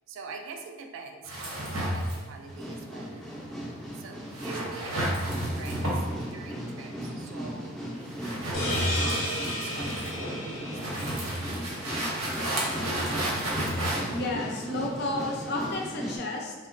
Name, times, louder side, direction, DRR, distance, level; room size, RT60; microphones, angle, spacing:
voice 1, 0.1-3.3 3.9-7.9 8.4-12.3, right 4 dB, 65° right, 4 dB, 0.3 m, -44 dB
sound 1, 1.2-15.7, right 1 dB, 85° right, 0.8 m, -33 dB
sound 2, 2.5-16.2, equal, ahead, 0.5 m, -37 dB
sound 3, 8.5-12.0, left 1 dB, 90° left, 0.7 m, -34 dB
voice 2, 14.1-16.5, left 2 dB, 50° left, 0 dB, 0.5 m, -32 dB
2.9 x 2.9 x 2.5 m, 1.3 s
head